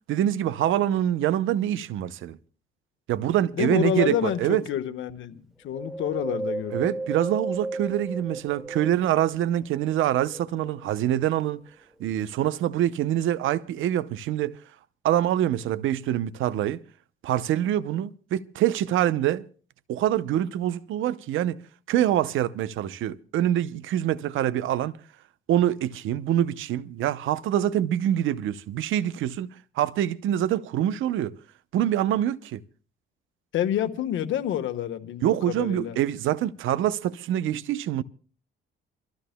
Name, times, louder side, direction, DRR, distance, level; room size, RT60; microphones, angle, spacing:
voice 1, 0.1-2.4 3.1-4.6 6.7-11.6 12.0-14.6 15.0-16.8 17.2-19.4 19.9-21.6 21.9-24.9 25.5-29.5 29.8-31.3 31.7-32.6 35.2-38.0, right 11 dB, 80° right, 0.7 m, -25 dB
voice 2, 3.5-6.9 33.5-36.0, left 10 dB, 80° left, 1.3 m, -28 dB
Wind, 5.7-9.3 9.8-11.1 11.6-11.7, right 2 dB, ahead, 1.4 m, -34 dB
28.0 x 14.5 x 2.2 m
cardioid pair, 90°, 20 cm